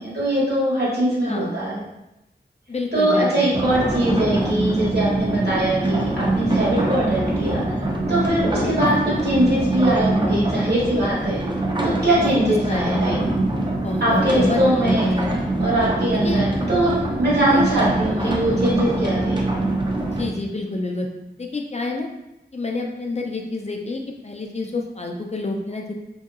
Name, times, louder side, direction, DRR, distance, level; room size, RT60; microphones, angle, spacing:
voice 1, 0.0-1.8 2.9-7.6 8.1-8.9 9.2-11.4 11.8-13.1 14.0-15.1 15.6-19.4, right 1 dB, 70° right, -7 dB, 1.2 m, -21 dB
voice 2, 2.7-3.5 8.4-8.7 12.1-12.3 12.7-13.0 13.8-15.4 16.2-16.4 17.5-17.6 18.0-18.4 20.1-21.1 21.4-22.1 22.5-25.9, left 2 dB, 40° left, 1 dB, 0.4 m, -28 dB
sound 1, 3.5-20.3, right 2 dB, 25° right, 0.4 m, -24 dB
3.0 x 2.7 x 2.4 m, 0.93 s
wide cardioid pair, 65°, 18 cm